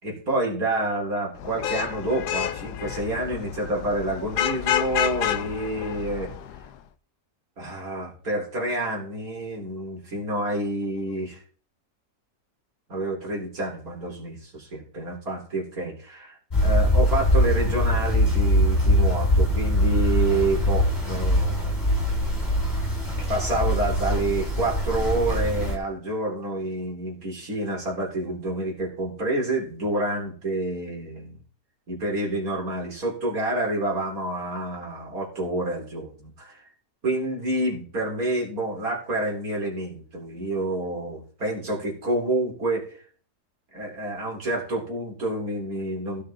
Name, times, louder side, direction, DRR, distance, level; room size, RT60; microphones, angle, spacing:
voice 1, 0.0-6.3 7.6-11.4 12.9-16.4 16.6-22.1 23.3-31.4 31.9-36.7 37.0-43.0 43.7-46.2, right 1 dB, 65° right, -1 dB, 4.4 m, -28 dB
Vehicle horn car horn honking / Traffic noise roadway noise, 1.4-6.7, left 11 dB, 90° left, 1.3 m, -29 dB
sound 1, 16.5-25.8, equal, 25° left, 3.1 m, -22 dB
16.5 x 6.8 x 3.8 m, 0.42 s
omnidirectional pair, 1.7 m